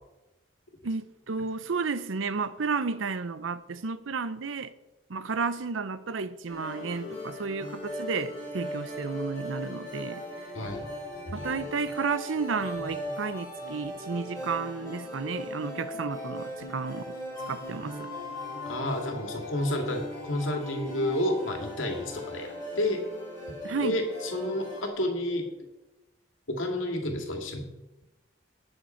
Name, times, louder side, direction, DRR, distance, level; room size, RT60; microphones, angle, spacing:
voice 1, 0.8-4.7 5.1-10.2 11.3-17.2 17.5-18.1 23.6-24.0, right 4 dB, 85° right, 0.6 m, -32 dB
sound 1, 6.5-24.9, left 1 dB, 20° left, 4.8 m, -38 dB
voice 2, 10.5-10.9 11.3-11.6 12.8-12.9 18.7-23.0 23.8-25.5 26.5-27.7, left 1 dB, 90° left, 2.2 m, -30 dB
18.0 x 6.7 x 4.4 m
head